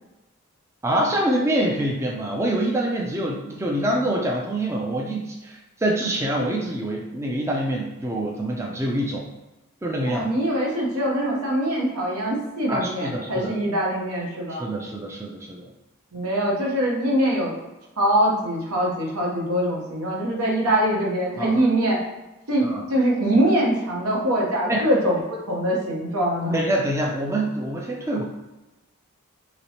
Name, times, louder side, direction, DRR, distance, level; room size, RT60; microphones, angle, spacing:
voice 1, 0.8-9.3 9.8-10.3 12.7-13.5 14.5-15.7 21.4-21.6 22.6-22.8 24.7-24.8 26.5-28.2, right 1 dB, 10° right, -1 dB, 0.3 m, -25 dB
voice 2, 10.1-14.6 16.1-17.5 18.0-22.0 22.5-25.2 25.5-26.6, right 1 dB, 85° right, -3 dB, 1.0 m, -23 dB
3.0 x 3.0 x 2.8 m, 1.0 s
head